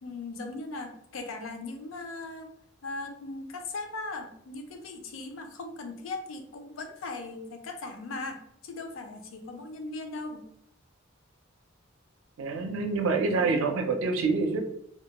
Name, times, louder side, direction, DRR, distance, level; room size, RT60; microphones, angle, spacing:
voice 1, 0.0-2.5 2.8-10.5 13.3-13.8, left 3 dB, 70° left, 5 dB, 0.4 m, -39 dB
voice 2, 12.4-14.6, right 4 dB, 80° right, 4 dB, 0.5 m, -26 dB
2.2 x 2.1 x 2.8 m, 0.73 s
head